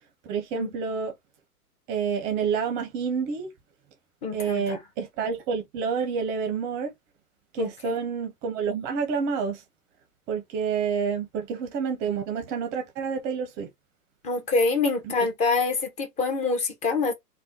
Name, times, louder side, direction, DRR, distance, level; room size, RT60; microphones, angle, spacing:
voice 1, 0.2-1.1 1.9-3.5 4.3-6.9 7.5-9.6 10.3-13.7 15.0-15.1, right 6 dB, 25° right, 0.7 m, -28 dB
voice 2, 4.2-4.8 7.6-8.0 14.2-17.1, left 4 dB, 15° left, 0.7 m, -26 dB
3.4 x 2.3 x 2.8 m
hypercardioid pair, 125°, 47 cm